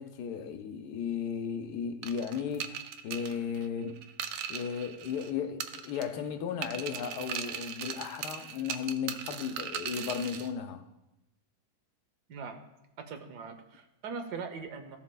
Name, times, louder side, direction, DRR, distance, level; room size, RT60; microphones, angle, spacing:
voice 1, 0.0-4.0 4.5-10.9, left 7 dB, 90° left, 1.3 m, -35 dB
sound 1, 2.0-5.3 5.6-6.3 6.6-10.5, right 8 dB, 65° right, 0.9 m, -39 dB
voice 2, 12.3-12.6 13.0-15.0, right 5 dB, 85° right, 1.4 m, -41 dB
14.5 x 7.3 x 2.2 m
omnidirectional pair, 1.7 m